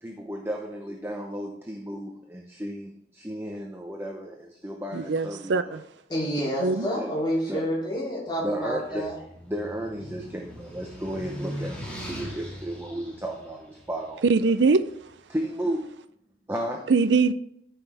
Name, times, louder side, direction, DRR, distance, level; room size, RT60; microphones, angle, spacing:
voice 1, 0.0-5.8 6.9-7.1 7.5-7.6 8.4-9.1 9.5-14.2 15.3-16.0 16.5-16.9, right 1 dB, 15° right, 0.8 m, -33 dB
voice 2, 4.9-5.8 6.6-6.9 14.3-14.8 16.9-17.3, right 4 dB, 80° right, 0.5 m, -22 dB
voice 3, 6.1-9.1, equal, 25° left, 3.2 m, -28 dB
sound 1, 8.6-14.8, equal, 5° left, 2.0 m, -40 dB
13.5 x 5.7 x 3.5 m
head